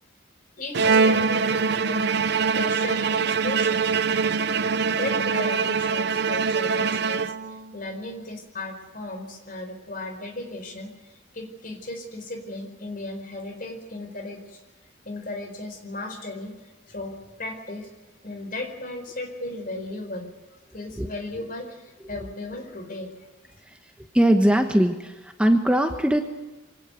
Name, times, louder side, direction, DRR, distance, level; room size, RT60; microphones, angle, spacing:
voice 1, 0.6-3.9 4.9-10.9 11.3-14.6 15.0-16.5 16.9-17.9 18.2-20.3 20.7-23.1, left 2 dB, 45° left, 6 dB, 4.6 m, -35 dB
Bowed string instrument, 0.7-7.7, right 5 dB, 60° right, 0.7 m, -23 dB
voice 2, 23.6-26.2, right 1 dB, 5° right, 5 dB, 1.2 m, -21 dB
24.0 x 17.5 x 8.2 m, 1.2 s
head